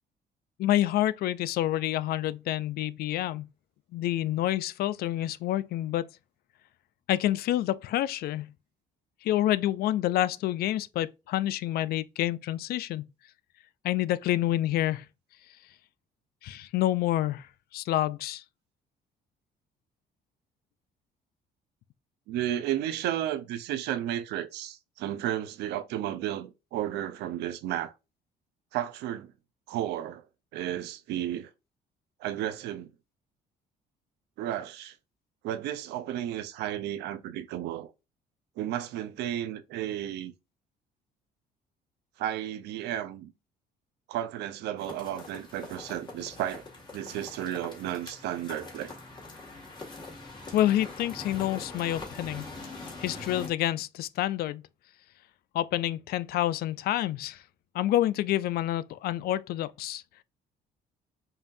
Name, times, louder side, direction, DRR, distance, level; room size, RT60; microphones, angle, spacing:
voice 1, 0.6-3.5 3.9-6.1 7.1-8.5 9.2-13.1 13.8-15.1 16.4-17.5 17.7-18.4 50.5-52.5 53.0-54.6 55.5-57.4 57.7-60.0, left 13 dB, 65° left, 0.4 m, -28 dB
voice 2, 22.3-27.9 28.7-29.3 29.7-30.2 30.5-31.5 32.2-32.9 34.4-35.0 35.4-37.9 38.6-40.3 42.2-43.3 44.1-46.6 46.9-48.9, right 11 dB, 85° right, 0.6 m, -33 dB
sound 1, 44.8-53.5, left 3 dB, 25° left, 1.7 m, -43 dB
5.5 x 2.6 x 2.5 m
cardioid pair, 110°, 17 cm